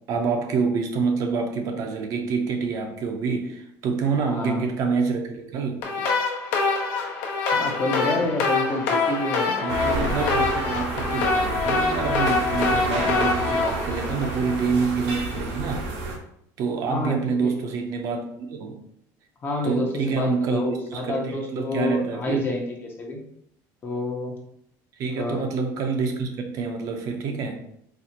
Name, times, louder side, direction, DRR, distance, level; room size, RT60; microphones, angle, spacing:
voice 1, 0.1-5.9 9.5-15.9 16.6-18.8 19.6-22.4 25.0-27.6, right 5 dB, 45° right, 4 dB, 0.5 m, -27 dB
voice 2, 4.2-4.7 6.0-6.1 7.5-10.1 16.9-17.7 19.4-23.2 23.8-24.4 25.1-25.4, left 2 dB, 25° left, 1 dB, 0.6 m, -29 dB
sound 1, 5.8-14.9, left 3 dB, 70° left, 0.8 m, -25 dB
sound 2, 9.7-16.2, right 2 dB, 90° right, 0.9 m, -30 dB
4.1 x 2.4 x 2.8 m, 0.71 s
cardioid pair, 165°, 8 cm